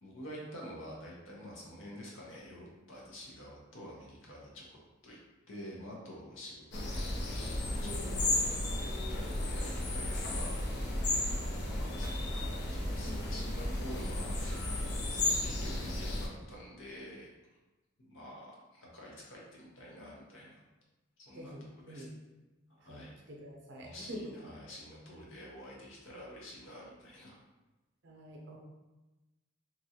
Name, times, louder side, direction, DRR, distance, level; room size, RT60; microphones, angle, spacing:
voice 1, 0.0-5.2 5.5-10.6 11.6-14.9 15.4-17.3 18.0-20.6 21.3-22.0 22.8-23.2 23.8-27.4, equal, 70° left, -4 dB, 0.8 m, -48 dB
sound 1, 6.7-16.3, left 1 dB, 55° left, 0.5 m, -34 dB
voice 2, 7.7-8.4 10.4-10.5 13.0-13.4 20.4-20.5 21.3-22.1 22.8-24.3 28.0-28.6, equal, 60° right, -1 dB, 0.6 m, -47 dB
3.0 x 2.4 x 2.8 m, 1.1 s
head